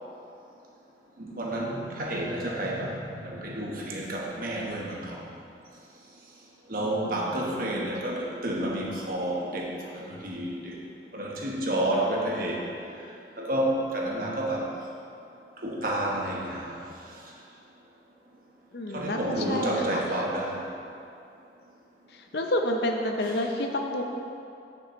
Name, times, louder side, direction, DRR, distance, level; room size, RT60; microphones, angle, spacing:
voice 1, 1.2-5.2 6.7-10.8 11.1-12.7 13.4-14.7 15.6-16.8 18.9-20.6, right 1 dB, 50° right, -3 dB, 1.2 m, -30 dB
voice 2, 7.0-7.9 18.7-20.0 22.1-24.0, left 1 dB, 60° left, 3 dB, 0.6 m, -30 dB
8.8 x 6.9 x 3.1 m, 2.6 s
head